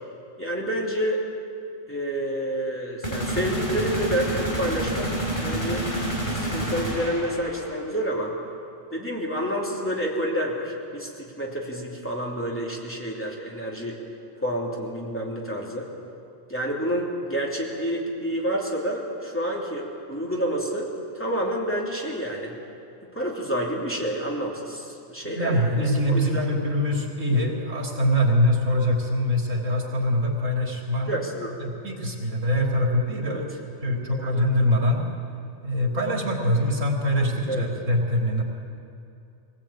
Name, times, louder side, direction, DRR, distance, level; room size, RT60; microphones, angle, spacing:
voice 1, 0.4-1.2 1.9-5.1 5.4-5.8 6.3-8.3 8.9-14.0 14.3-15.9 16.5-20.9 21.1-22.5 23.1-26.4 31.1-31.5 33.2-33.4 34.1-34.4 37.5-37.7, equal, 10° left, -3 dB, 3.2 m, -29 dB
sound 1, 3.0-7.8, right 1 dB, 40° left, 5.0 m, -28 dB
voice 2, 25.2-31.2 31.6-33.5 33.8-35.0 35.6-38.4, equal, 85° right, 0 dB, 3.3 m, -23 dB
23.0 x 18.0 x 8.8 m, 2.6 s
omnidirectional pair, 1.3 m